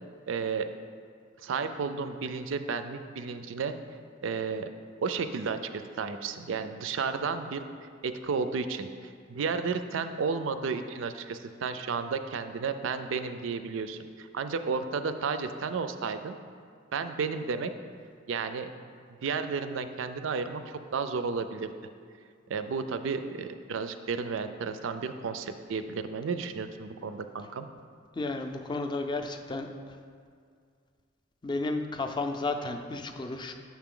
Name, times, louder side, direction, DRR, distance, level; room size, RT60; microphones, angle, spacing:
voice 1, 0.3-0.7 1.4-3.7 4.2-4.7 5.0-7.6 8.0-16.4 16.9-17.7 18.3-18.7 19.2-21.7 22.5-27.7, right 5 dB, 90° right, 10 dB, 0.4 m, -32 dB
voice 2, 28.1-29.7 31.4-33.5, left 2 dB, 25° left, 5 dB, 0.4 m, -32 dB
7.4 x 5.9 x 3.7 m, 2.1 s
head